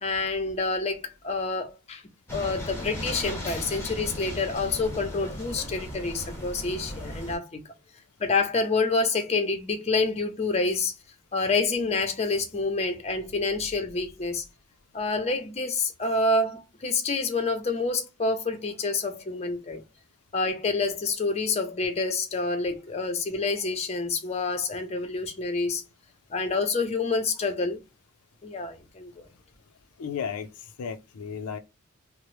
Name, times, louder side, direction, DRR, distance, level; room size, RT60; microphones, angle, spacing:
voice 1, 0.0-2.0 2.3-7.6 8.2-10.9 11.3-14.4 14.9-19.8 20.3-25.8 26.3-27.8 28.4-29.3, left 3 dB, 30° left, 0.5 m, -27 dB
sound 1, 2.3-7.4, equal, 10° left, 1.0 m, -36 dB
voice 2, 30.0-31.6, left 6 dB, 80° left, 0.4 m, -34 dB
2.9 x 2.0 x 3.1 m
head